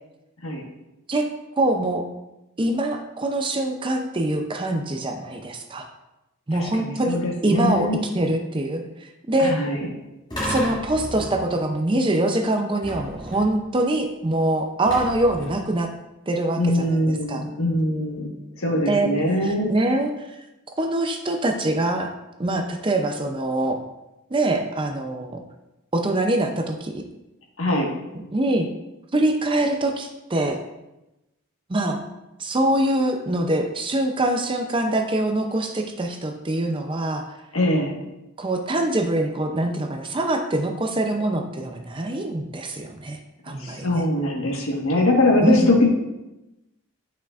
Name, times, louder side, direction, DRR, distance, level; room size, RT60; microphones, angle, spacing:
voice 1, 1.6-2.1 2.6-5.8 6.5-7.9 8.1-9.6 10.4-15.9 16.3-17.4 18.9-19.1 19.4-20.1 20.8-22.1 22.4-23.8 24.3-25.4 25.9-27.0 28.3-28.7 29.1-30.6 31.7-32.0 32.4-37.3 38.4-43.2 43.4-44.0 45.4-45.7, right 1 dB, 20° right, 4 dB, 0.5 m, -24 dB
voice 2, 6.5-8.0 9.4-9.9 16.6-19.7 27.6-27.9 37.5-37.9 43.6-45.9, left 1 dB, 65° left, -1 dB, 1.4 m, -22 dB
sound 1, 10.3-11.7 12.8-13.7 14.9-15.8, equal, 20° left, 2.5 m, -32 dB
9.1 x 5.7 x 2.5 m, 0.95 s
head